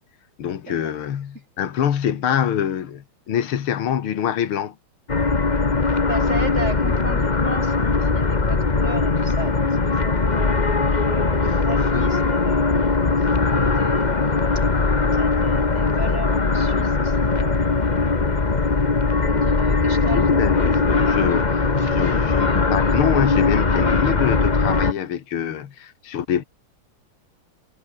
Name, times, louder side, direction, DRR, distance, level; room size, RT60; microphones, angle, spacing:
voice 1, 0.4-4.8 20.1-26.5, left 9 dB, 75° left, 2.5 m, -25 dB
sound 1, 5.1-24.9, left 4 dB, 25° left, 1.4 m, -20 dB
voice 2, 6.1-10.6 11.0-14.3 15.0-18.2 19.2-20.7 21.1-21.3 21.8-22.3 23.7-24.1, right 2 dB, 30° right, 7.3 m, -35 dB
omnidirectional pair, 2.4 m